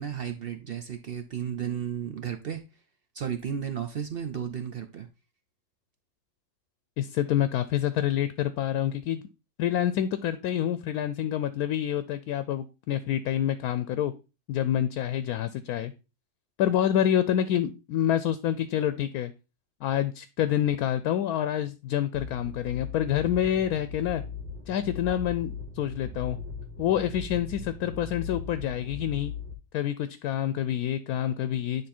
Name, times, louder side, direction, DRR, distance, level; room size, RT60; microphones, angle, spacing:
voice 1, 0.0-2.6 3.1-5.1, right 8 dB, 60° right, 6 dB, 0.6 m, -33 dB
voice 2, 7.0-9.2 9.6-14.1 14.5-15.9 16.6-19.3 19.8-24.2 24.7-26.4 26.8-29.3 29.7-31.9, left 10 dB, 75° left, 13 dB, 1.0 m, -27 dB
sound 1, 22.1-29.5, left 5 dB, 85° right, 1.5 m, -39 dB
9.5 x 3.5 x 4.2 m, 0.29 s
omnidirectional pair, 1.6 m